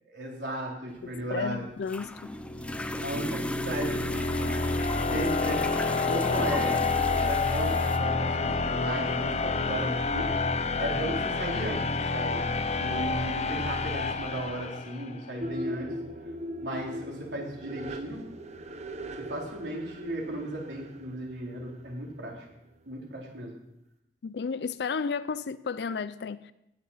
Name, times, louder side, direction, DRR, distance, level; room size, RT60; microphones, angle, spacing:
voice 1, 0.1-1.6 3.0-4.0 4.3-4.5 5.0-5.8 6.0-6.8 7.1-10.3 10.5-11.8 12.1-12.4 12.8-15.9 16.6-18.3 19.2-22.3 22.9-23.6, right 1 dB, 85° right, 3.7 m, -35 dB
voice 2, 1.0-2.3 24.2-26.5, left 5 dB, 65° left, 0.4 m, -33 dB
sound 1, 1.0-8.0, left 1 dB, 5° left, 0.5 m, -37 dB
sound 2, 2.3-15.2, left 3 dB, 40° left, 0.7 m, -29 dB
sound 3, 15.4-22.8, equal, 40° right, 0.9 m, -40 dB
17.5 x 7.6 x 5.7 m
head